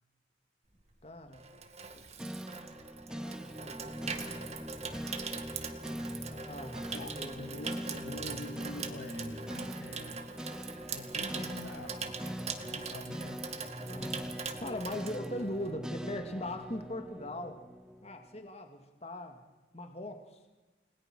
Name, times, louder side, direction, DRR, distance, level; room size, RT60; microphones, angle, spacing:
Water tap faucet / Sink (filling or washing), 0.8-15.9 16.1-16.4, right 5 dB, 35° right, 2.1 m, -42 dB
voice 1, 1.0-1.4 1.9-2.0 3.1-4.6 6.3-7.4 13.9-14.3 14.6-17.6 18.0-19.4 19.7-20.4, left 1 dB, 35° left, 5 dB, 2.3 m, -40 dB
sound 1, 2.2-18.5, equal, 5° right, 1.0 m, -42 dB
voice 2, 6.9-10.2 10.9-13.5, left 1 dB, 80° left, 6 dB, 2.8 m, -45 dB
30.0 x 21.0 x 6.3 m, 1.2 s
head